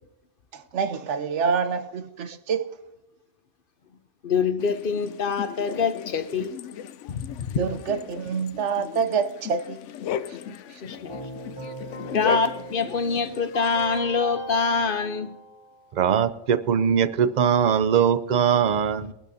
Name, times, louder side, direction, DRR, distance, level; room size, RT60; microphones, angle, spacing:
voice 1, 0.5-2.8 7.6-9.8 10.7-10.8, right 6 dB, 80° right, 1.1 m, -27 dB
voice 2, 4.2-6.5 7.1-7.6 10.8-11.1 12.1-15.3, left 5 dB, 55° left, 0.9 m, -25 dB
sound 1, 4.6-14.0, left 9 dB, 85° left, 0.9 m, -36 dB
Keyboard (musical), 11.1-16.1, right 1 dB, 25° left, 2.9 m, -40 dB
voice 3, 15.9-19.1, right 8 dB, 50° right, 0.6 m, -21 dB
21.5 x 11.5 x 2.7 m
omnidirectional pair, 1.2 m